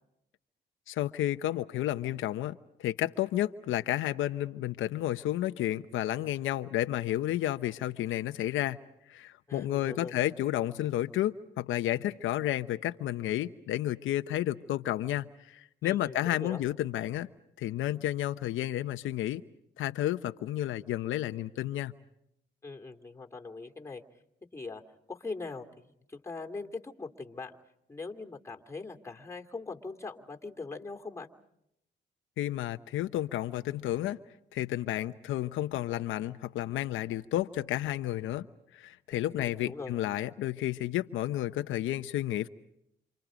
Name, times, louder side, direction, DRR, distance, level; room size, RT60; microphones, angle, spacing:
voice 1, 0.9-8.8 9.1-17.3 17.6-19.4 19.8-21.9 32.4-34.2 34.5-38.5 38.7-42.5, left 13 dB, 85° left, 9 dB, 0.8 m, -31 dB
voice 2, 9.5-10.1 15.8-16.6 22.6-24.0 24.5-24.8 25.1-27.5 27.9-31.3 39.2-40.0, left 3 dB, 15° left, 2 dB, 2.8 m, -41 dB
28.5 x 28.0 x 5.1 m, 0.79 s
cardioid pair, 90°, 20 cm